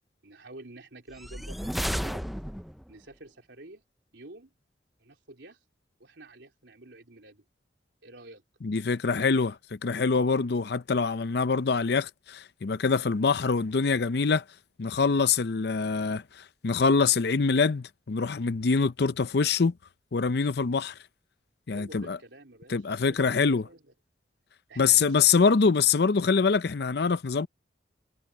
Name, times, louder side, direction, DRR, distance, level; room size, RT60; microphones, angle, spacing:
voice 1, 0.2-2.2 2.9-3.8 4.1-4.5 5.0-5.6 6.0-7.4 8.0-8.4 21.7-23.8 24.7-25.3, right 2 dB, 85° right, 3.6 m, -48 dB
sound 1, 1.1-2.9, equal, ahead, 0.4 m, -33 dB
voice 2, 8.6-14.4 14.8-16.2 16.6-19.7 20.1-20.9 21.7-22.2 22.7-23.6 24.8-27.5, left 5 dB, 60° left, 0.6 m, -24 dB
head